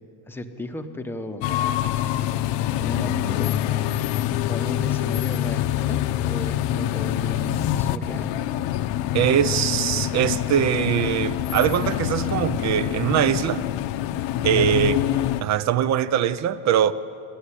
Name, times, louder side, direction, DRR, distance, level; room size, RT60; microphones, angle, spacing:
voice 1, 0.3-1.7 1.9-2.3 2.8-4.1 4.5-8.4 14.5-14.8, left 1 dB, 5° left, 0.9 m, -35 dB
sound 1, 1.4-15.4, left 12 dB, 60° left, 0.9 m, -25 dB
voice 2, 9.1-13.6 14.4-15.0 15.4-16.9, right 10 dB, 35° right, 0.6 m, -22 dB
27.5 x 12.5 x 9.9 m
cardioid pair, 165°, 49 cm